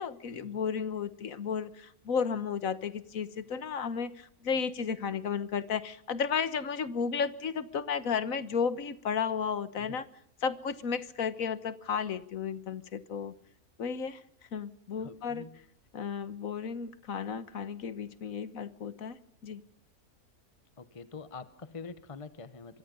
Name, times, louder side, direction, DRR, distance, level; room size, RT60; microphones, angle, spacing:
voice 1, 0.0-10.1 10.4-13.3 13.8-14.2 14.5-15.5 15.9-19.6, left 6 dB, 65° left, 13 dB, 1.6 m, -33 dB
voice 2, 15.0-15.6 20.8-22.8, left 4 dB, 25° left, 12 dB, 1.1 m, -45 dB
25.0 x 24.0 x 5.4 m, 0.66 s
omnidirectional pair, 1.6 m